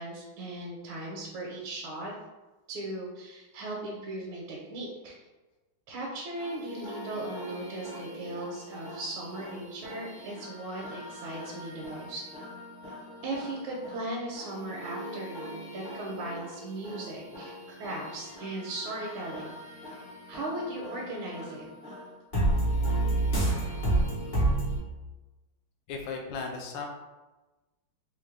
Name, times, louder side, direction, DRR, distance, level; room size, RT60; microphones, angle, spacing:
voice 1, 0.0-2.1 2.7-5.2 5.9-12.2 13.2-19.5 20.3-21.7, right 1 dB, 75° right, -3 dB, 1.4 m, -37 dB
sound 1, 6.4-24.8, right 2 dB, 40° left, 0.7 m, -34 dB
voice 2, 25.9-26.9, left 4 dB, 75° left, 1 dB, 1.1 m, -36 dB
3.4 x 2.6 x 3.1 m, 1.1 s
omnidirectional pair, 2.3 m